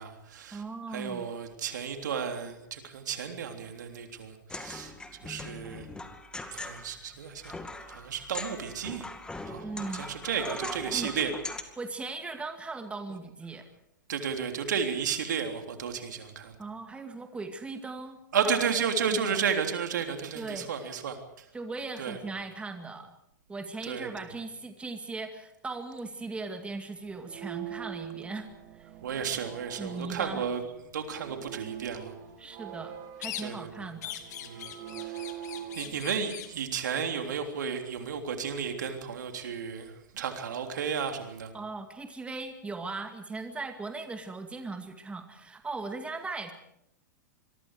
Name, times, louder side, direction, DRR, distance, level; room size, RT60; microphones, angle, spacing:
voice 1, 0.0-0.6 0.9-4.9 5.2-5.9 6.5-7.6 7.8-9.0 9.4-9.6 9.9-11.3 14.1-16.6 18.3-21.2 22.0-22.2 23.9-24.1 29.0-30.6 30.9-32.1 33.4-33.9 34.4-34.7 35.0-35.2 35.7-41.5, right 7 dB, 65° right, 5 dB, 3.4 m, -33 dB
voice 2, 0.5-1.3 9.6-10.0 10.4-11.3 11.8-13.7 16.6-18.2 18.4-18.7 19.1-19.4 20.3-20.7 21.5-23.1 23.5-28.9 29.8-30.4 32.4-34.2 41.5-46.5, right 3 dB, 10° right, 6 dB, 2.2 m, -38 dB
sound 1, 4.5-11.6, left 2 dB, 10° left, 2.3 m, -41 dB
sound 2, 27.1-36.1, right 11 dB, 45° right, 3.0 m, -44 dB
sound 3, 33.2-33.7 34.0-36.6, left 11 dB, 60° left, 2.5 m, -41 dB
26.5 x 23.0 x 4.9 m, 0.78 s
figure-of-eight pair, 105°, 10 cm